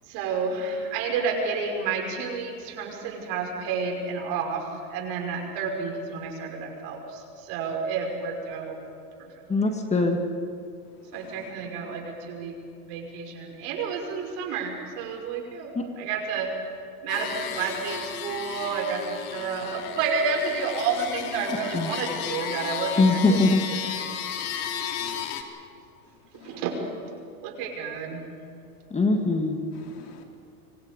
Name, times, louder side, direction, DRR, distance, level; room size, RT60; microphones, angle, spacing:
voice 1, 0.1-4.6 4.9-8.8 9.2-9.8 11.1-12.6 12.9-15.7 16.0-16.5 17.0-19.0 19.3-23.8 26.4-26.7 27.4-28.2, right 5 dB, 55° right, 1 dB, 5.8 m, -30 dB
voice 2, 9.5-10.2 21.7-21.9 23.0-23.6 28.9-29.6, left 3 dB, 15° left, 4 dB, 1.8 m, -21 dB
voice 3, 11.1-11.5 25.0-25.3 26.3-26.6 29.7-30.2, left 8 dB, 85° left, 2 dB, 4.3 m, -49 dB
sound 1, 17.1-25.4, left 8 dB, 65° left, 3.0 m, -34 dB
27.0 x 25.0 x 5.3 m, 2.5 s
supercardioid pair, 130°, 46 cm